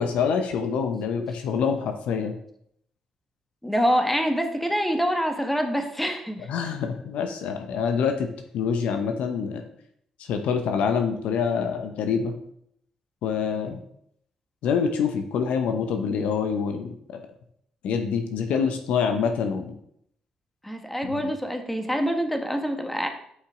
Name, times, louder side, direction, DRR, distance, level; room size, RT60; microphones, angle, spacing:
voice 1, 0.0-2.3 6.5-9.6 10.3-12.4 13.2-13.8 14.6-17.2 17.8-19.8 21.0-21.2, left 6 dB, 75° left, 6 dB, 0.8 m, -26 dB
voice 2, 3.6-6.5 20.6-23.1, equal, 5° left, 4 dB, 1.5 m, -25 dB
8.0 x 5.5 x 3.8 m, 0.70 s
supercardioid pair, 55°, 2 cm